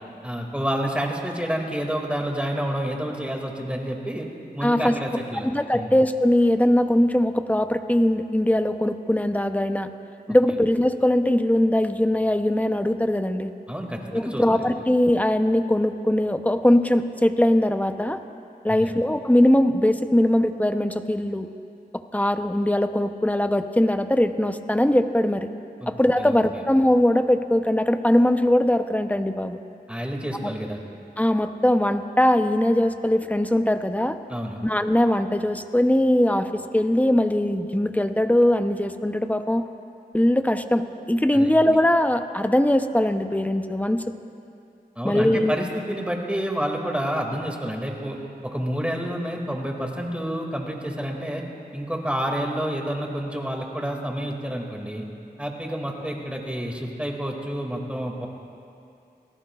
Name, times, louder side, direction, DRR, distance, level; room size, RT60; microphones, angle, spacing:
voice 1, 0.2-4.3 4.5-5.9 13.7-14.7 18.7-18.9 25.8-25.9 26.2-26.6 29.9-30.8 34.3-34.6 41.3-41.5 45.0-51.4 51.7-55.1 55.4-58.3, equal, 5° right, 1 dB, 2.3 m, -29 dB
voice 2, 4.6-5.0 5.4-9.9 10.3-13.5 14.1-18.2 18.6-21.5 22.1-25.5 25.9-29.6 30.4-30.5 31.2-34.2 34.6-39.6 40.1-44.1 45.0-45.6, left 1 dB, 10° left, 8 dB, 0.7 m, -21 dB
26.5 x 18.0 x 2.4 m, 2.6 s
wide cardioid pair, 40°, 17 cm